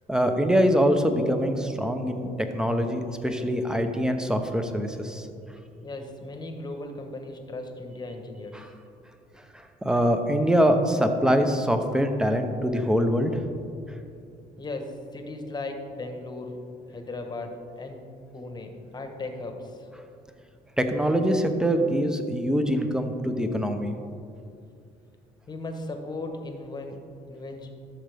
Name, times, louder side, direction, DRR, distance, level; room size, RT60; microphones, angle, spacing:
voice 1, 0.1-5.3 8.5-8.7 9.5-13.4 20.8-24.0, equal, 5° right, 6 dB, 0.7 m, -24 dB
voice 2, 5.8-8.7 14.6-16.6 16.9-18.1 18.3-19.9 25.5-27.8, left 2 dB, 25° left, 5 dB, 1.1 m, -37 dB
13.0 x 6.5 x 3.4 m, 2.5 s
cardioid pair, 110°, 17 cm